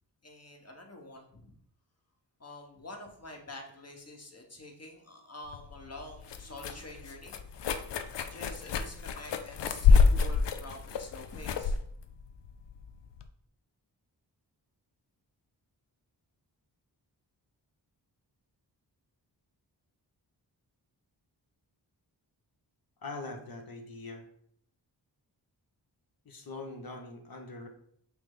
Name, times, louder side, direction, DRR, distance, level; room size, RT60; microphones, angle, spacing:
voice 1, 0.2-1.5 2.4-7.6 8.3-11.8, left 2 dB, 35° left, 1 dB, 1.2 m, -47 dB
sound 1, 5.5-13.3, left 5 dB, 70° left, 0.5 m, -28 dB
voice 2, 23.0-24.2 26.2-27.7, left 3 dB, 55° left, 4 dB, 1.0 m, -42 dB
6.0 x 2.1 x 3.8 m, 0.66 s
cardioid pair, 40°, 43 cm